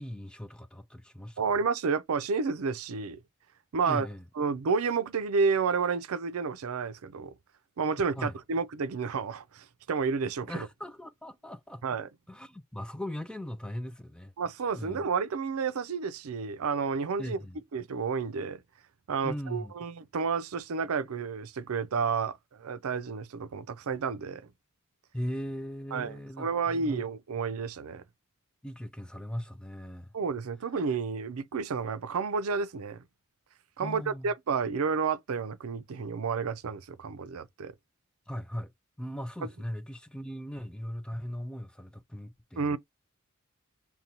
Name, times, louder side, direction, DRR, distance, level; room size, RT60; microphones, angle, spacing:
voice 1, 0.0-1.4 3.9-4.2 8.2-8.3 10.5-11.8 12.3-14.3 14.7-15.0 17.2-17.6 19.2-19.7 25.1-27.0 28.6-30.1 33.8-34.3 38.3-38.7 39.0-42.8, equal, 5° left, 0.3 m, -39 dB
voice 2, 1.4-3.2 3.7-4.1 4.4-7.3 7.8-10.7 11.8-12.1 14.4-17.4 17.7-18.6 19.1-24.4 25.9-28.0 30.1-33.0 33.8-37.7 39.4-39.5 42.6-42.8, right 5 dB, 75° right, 0.5 m, -31 dB
5.2 x 2.2 x 2.9 m
head